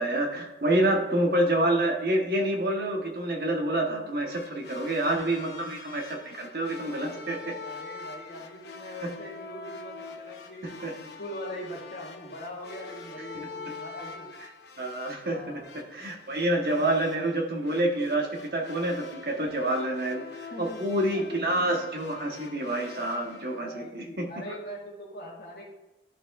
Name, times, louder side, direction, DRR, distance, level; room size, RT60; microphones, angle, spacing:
voice 1, 0.0-7.5 10.8-10.9 13.3-13.5 14.8-15.6 15.9-24.3, right 1 dB, 60° right, 2 dB, 1.1 m, -28 dB
sound 1, 4.3-23.6, left 4 dB, 75° left, 0.8 m, -45 dB
voice 2, 7.6-14.3 15.2-15.7 20.5-20.9 21.1-21.4 23.6-25.7, equal, 60° left, -3 dB, 1.7 m, -42 dB
11.5 x 4.5 x 2.4 m, 1.0 s
head